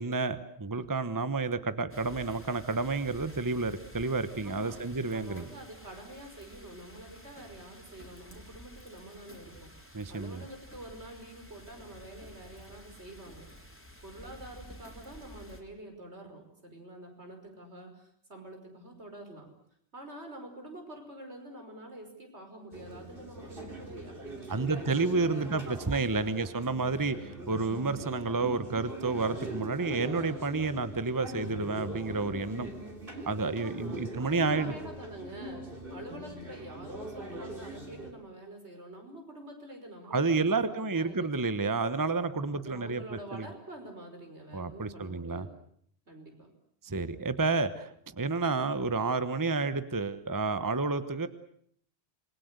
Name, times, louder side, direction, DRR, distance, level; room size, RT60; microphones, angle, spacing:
voice 1, 0.0-5.5 9.9-10.4 24.5-32.7 33.3-34.7 40.1-43.0 43.3-43.5 44.5-45.5 46.8-47.9 48.2-51.3, right 3 dB, 20° right, 12 dB, 1.1 m, -30 dB
sound 1, 1.9-15.6, equal, 10° left, 3.7 m, -51 dB
voice 2, 4.4-4.8 5.1-9.7 10.1-13.5 14.0-19.5 19.9-26.4 33.6-41.3 42.3-45.5 46.1-46.5, right 1 dB, 80° right, 4 dB, 5.6 m, -47 dB
sound 2, 22.7-38.1, right 1 dB, 55° right, 3.8 m, -42 dB
27.5 x 21.0 x 8.1 m, 0.67 s
omnidirectional pair, 1.1 m